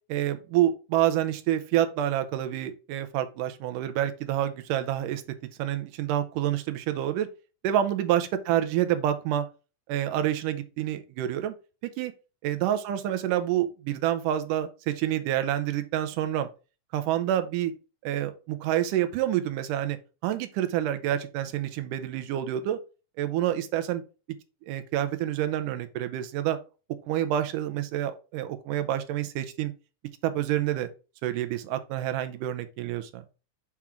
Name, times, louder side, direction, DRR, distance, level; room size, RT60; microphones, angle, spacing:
voice 1, 0.1-5.2 5.6-7.3 7.6-9.5 9.9-11.5 11.8-12.1 12.4-16.5 16.9-17.7 18.0-20.0 20.2-22.8 23.2-24.0 24.7-26.6 27.1-29.7 30.2-30.9 31.2-33.2, right 12 dB, 85° right, 2.2 m, -28 dB
7.2 x 3.7 x 4.4 m
omnidirectional pair, 3.8 m